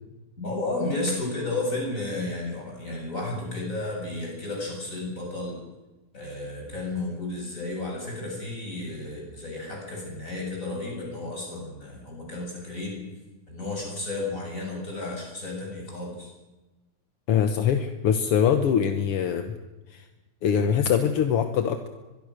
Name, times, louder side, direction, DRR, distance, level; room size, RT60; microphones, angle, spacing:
voice 1, 0.4-5.6 6.1-13.0 13.5-16.3, left 2 dB, 20° left, -1 dB, 8.0 m, -32 dB
voice 2, 17.3-19.5 19.9-20.0 20.4-21.9, left 8 dB, 60° left, 7 dB, 1.7 m, -23 dB
24.0 x 22.0 x 6.6 m, 1.1 s
omnidirectional pair, 3.7 m